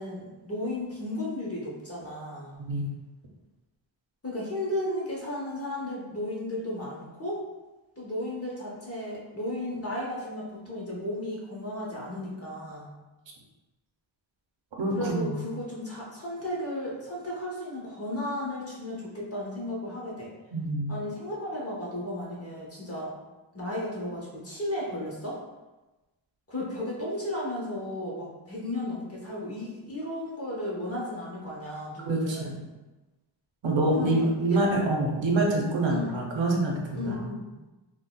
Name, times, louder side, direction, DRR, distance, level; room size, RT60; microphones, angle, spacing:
voice 1, 0.0-2.6 4.2-7.4 8.0-12.9 14.9-20.3 20.9-23.1 23.5-25.4 26.5-32.6 33.9-34.6 35.8-36.2 36.9-37.5, left 1 dB, 30° left, -4 dB, 0.9 m, -34 dB
voice 2, 2.6-2.9 14.8-15.4 20.5-20.9 32.0-32.6 33.6-37.2, right 2 dB, 70° right, 0 dB, 0.7 m, -26 dB
3.9 x 2.2 x 2.2 m, 1.1 s
wide cardioid pair, 95°, 47 cm